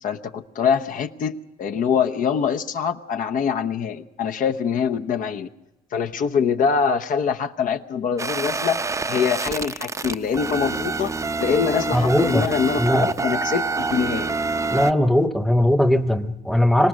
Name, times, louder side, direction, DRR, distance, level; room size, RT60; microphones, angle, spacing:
voice 1, 0.0-5.5 5.9-8.8 9.1-14.3, left 6 dB, 55° left, 6 dB, 0.9 m, -24 dB
sound 1, 8.2-14.9, right 3 dB, 20° right, 0.7 m, -26 dB
voice 2, 11.9-12.5 12.8-13.1 14.7-16.9, left 1 dB, ahead, 11 dB, 1.0 m, -19 dB
25.0 x 18.0 x 6.4 m, 0.93 s
cardioid pair, 110°, 17 cm